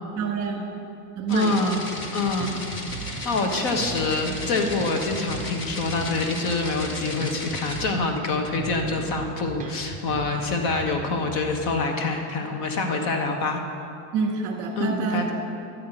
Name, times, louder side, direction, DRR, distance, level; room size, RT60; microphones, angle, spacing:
voice 1, 0.2-0.7 1.2-1.6 14.1-15.2, right 5 dB, 40° right, 1 dB, 1.8 m, -26 dB
voice 2, 1.3-1.8 2.1-2.6 3.2-13.6 14.7-15.3, left 3 dB, 45° left, 3 dB, 1.2 m, -26 dB
sound 1, 1.3-7.8, left 2 dB, 25° left, 1.1 m, -36 dB
Bass guitar, 2.0-3.4 3.8-8.2 8.6-11.6, right 3 dB, 20° right, 0.7 m, -38 dB
11.5 x 5.7 x 8.9 m, 2.7 s
supercardioid pair, 160°, 46 cm